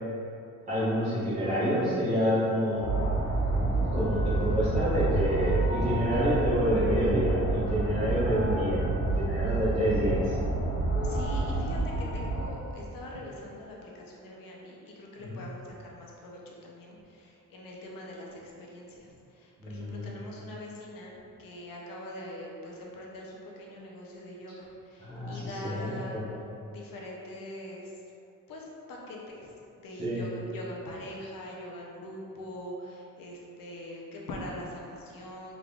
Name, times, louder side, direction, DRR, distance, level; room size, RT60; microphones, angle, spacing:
voice 1, 0.7-2.8 3.7-8.8 9.1-10.3 15.3-15.4 19.6-20.1 25.0-26.3 30.0-30.2, equal, 25° right, -16 dB, 0.9 m, -28 dB
sound 1, 2.8-12.5, right 2 dB, 70° left, 1.0 m, -28 dB
voice 2, 5.9-6.4 11.0-26.3 26.7-28.0 28.5-29.5 29.8-35.6, left 1 dB, 90° left, -3 dB, 0.7 m, -43 dB
3.6 x 3.6 x 2.3 m, 2.7 s
wide cardioid pair, 175°, 33 cm